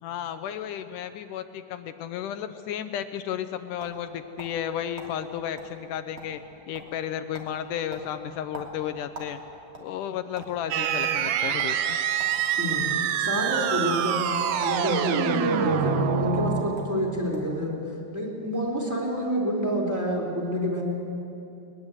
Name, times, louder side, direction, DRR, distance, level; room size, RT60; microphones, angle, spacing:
voice 1, 0.0-6.4 6.7-9.4 9.8-12.0, left 10 dB, 75° left, 10 dB, 1.9 m, -33 dB
sound 1, 3.2-4.7 5.0-5.1 5.6-5.7 6.0-6.5 6.7-7.0 7.3-7.5 7.9-9.4 9.7-10.5 11.0-11.2 11.6-11.7 12.2-12.9 13.6-13.8 14.6-14.8 15.1-15.7 16.4-16.5 16.8-17.0 17.3-17.6, right 2 dB, 35° right, 3.3 m, -43 dB
sound 2, 10.7-17.2, right 9 dB, 80° right, 2.7 m, -26 dB
voice 2, 12.6-14.3 14.6-17.7 18.1-20.8, equal, 5° right, -2 dB, 3.4 m, -28 dB
21.5 x 20.5 x 8.1 m, 2.8 s
omnidirectional pair, 4.3 m